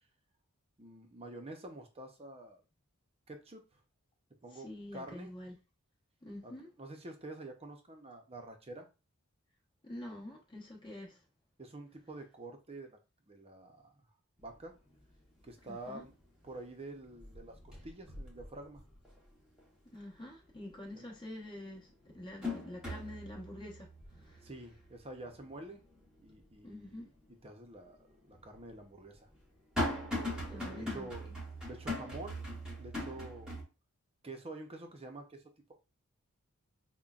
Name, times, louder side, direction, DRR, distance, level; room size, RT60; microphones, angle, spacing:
voice 1, 0.8-2.6 3.3-3.8 4.4-5.3 6.4-6.5 6.8-8.9 11.6-13.0 13.3-13.9 14.4-14.7 15.4-16.1 16.4-18.8 20.9-21.1 24.4-25.8 26.2-27.1 27.4-28.0 28.2-29.3 30.5-31.3 31.7-32.5 32.8-33.6 34.2-35.4, right 2 dB, 30° right, 0.7 m, -47 dB
voice 2, 4.5-5.5 6.2-6.7 9.8-11.2 15.6-16.0 19.9-21.9 22.1-23.9 24.2-24.4 26.6-27.1 30.5-31.1, left 1 dB, 25° left, 1.1 m, -46 dB
sound 1, 14.4-14.5 15.0-15.5 15.9-16.7 16.9-19.2 19.6-19.7 21.1-21.2 21.7-26.9 27.3-27.4 28.3-33.6, left 1 dB, 5° right, 1.1 m, -41 dB
5.3 x 2.2 x 2.4 m
head